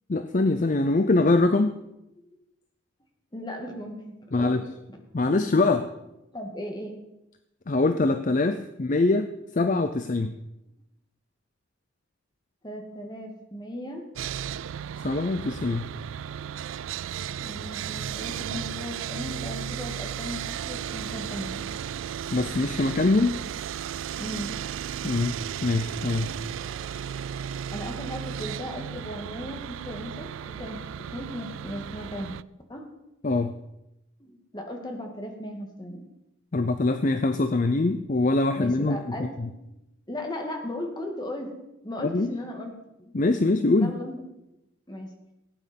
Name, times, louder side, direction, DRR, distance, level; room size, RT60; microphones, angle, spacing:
voice 1, 0.1-1.7 4.3-4.6 5.1-5.9 7.7-10.3 15.0-15.9 22.3-23.4 25.0-26.3 33.2-33.6 36.5-39.0 39.4-39.5 42.0-42.3 43.1-43.9, left 2 dB, 40° left, 9 dB, 0.5 m, -23 dB
voice 2, 3.3-4.6 4.9-5.3 6.3-7.0 8.6-8.7 12.6-14.0 17.4-21.7 24.2-24.6 26.5-26.6 27.7-30.8 31.1-32.3 32.7-32.9 34.2-36.0 38.6-39.8 40.1-41.5 41.8-42.7 43.0-43.1 43.8-44.2 44.9-45.1, left 1 dB, 20° left, 3 dB, 1.9 m, -37 dB
Sawing, 14.2-32.4, right 9 dB, 75° right, 0.3 m, -35 dB
16.5 x 8.9 x 5.3 m, 0.91 s
head